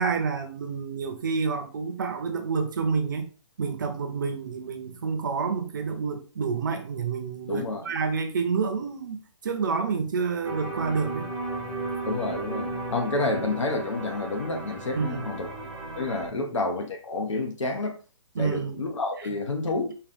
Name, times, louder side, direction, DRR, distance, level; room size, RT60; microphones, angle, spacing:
voice 1, 0.0-3.3 3.6-11.3 12.8-13.0 14.9-15.3 16.3-16.4 18.4-18.8, right 5 dB, 40° right, 0.7 m, -29 dB
voice 2, 7.5-7.9 12.0-15.5 15.9-18.0 18.4-19.9, left 2 dB, 70° left, 1.3 m, -29 dB
sound 1, 10.4-16.3, right 2 dB, ahead, 0.7 m, -35 dB
4.7 x 2.9 x 3.5 m
hypercardioid pair, 170°, 16 cm